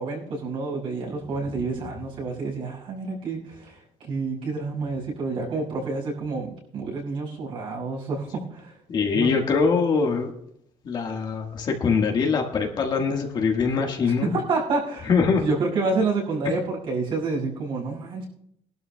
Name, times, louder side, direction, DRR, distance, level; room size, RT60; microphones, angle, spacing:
voice 1, 0.0-8.7 9.1-9.3 14.0-15.1 15.4-18.3, right 3 dB, 50° right, -1 dB, 6.0 m, -28 dB
voice 2, 8.9-10.3 10.8-14.3 15.1-15.4, left 5 dB, 40° left, 2 dB, 1.6 m, -23 dB
21.5 x 12.0 x 2.3 m, 0.72 s
cardioid pair, 165°, 11 cm